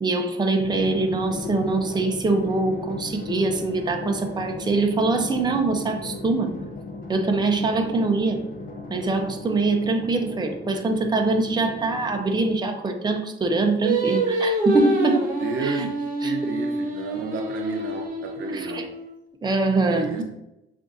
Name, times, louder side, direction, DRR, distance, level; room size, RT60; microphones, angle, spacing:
voice 1, 0.0-6.5 7.1-8.4 8.9-15.2 15.6-15.9 16.2-16.3 18.5-18.9 19.4-20.2, right 3 dB, 20° right, 4 dB, 0.6 m, -23 dB
Drum, 0.6-13.0, left 2 dB, 45° left, 0.7 m, -36 dB
Singing, 13.8-19.1, right 2 dB, 45° right, 1.1 m, -26 dB
voice 2, 15.4-15.9 16.2-18.9 19.9-20.2, right 5 dB, 75° right, 4 dB, 0.7 m, -31 dB
7.4 x 2.6 x 2.6 m, 0.89 s
cardioid pair, 90°, 20 cm